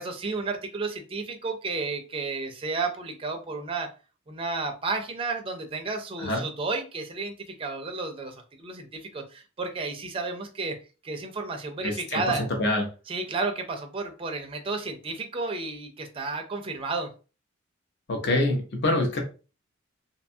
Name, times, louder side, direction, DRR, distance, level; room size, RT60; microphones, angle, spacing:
voice 1, 0.0-3.9 4.3-10.8 11.0-12.4 13.1-17.1, right 3 dB, 25° right, 4 dB, 0.4 m, -32 dB
voice 2, 11.8-12.2 12.6-12.9 18.1-19.2, left 1 dB, 55° left, 2 dB, 0.7 m, -25 dB
2.6 x 2.3 x 2.6 m, 0.34 s
head